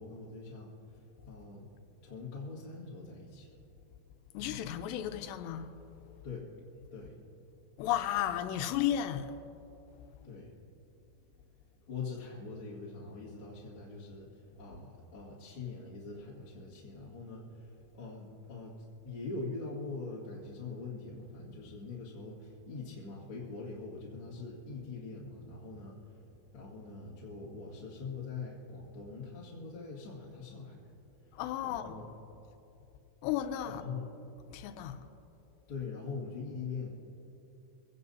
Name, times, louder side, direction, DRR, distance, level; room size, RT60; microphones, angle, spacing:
voice 1, 0.0-1.7 2.0-3.5 6.2-6.4 6.9-7.2 10.2-10.5 11.9-18.8 19.0-26.2 26.5-30.9 31.3-32.1 33.7-34.0 35.7-37.0, left 4 dB, 40° left, 2.1 m, -43 dB
voice 2, 4.3-5.7 7.8-9.4 31.3-32.0 33.2-33.8 34.5-35.1, left 11 dB, 90° left, 2.8 m, -34 dB
24.0 x 17.5 x 2.7 m
omnidirectional pair, 4.9 m